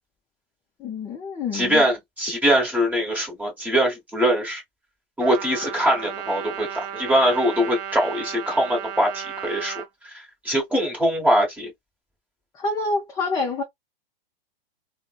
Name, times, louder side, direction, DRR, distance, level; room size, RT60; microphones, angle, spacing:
voice 1, 0.8-1.8 12.5-13.6, left 3 dB, 15° left, 0.4 m, -27 dB
voice 2, 1.5-4.6 5.2-9.8 10.1-11.7, equal, 5° right, 1.2 m, -22 dB
Trumpet, 5.2-9.9, right 9 dB, 30° right, 0.6 m, -34 dB
3.5 x 2.0 x 2.2 m
hypercardioid pair, 135°, 30 cm